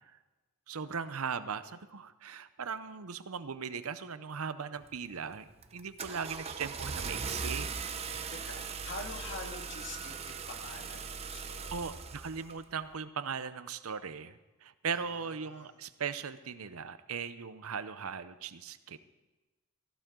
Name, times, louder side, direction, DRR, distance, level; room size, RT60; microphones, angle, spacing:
voice 1, 0.7-7.7 8.1-8.3 11.7-19.0, right 6 dB, 80° right, 13 dB, 0.7 m, -39 dB
Car / Engine starting, 4.8-5.2 5.6-12.6, right 5 dB, 30° right, 0.7 m, -39 dB
voice 2, 8.3-11.8 14.9-15.7, left 2 dB, 55° left, 3 dB, 1.9 m, -46 dB
16.5 x 15.0 x 3.8 m, 1.2 s
head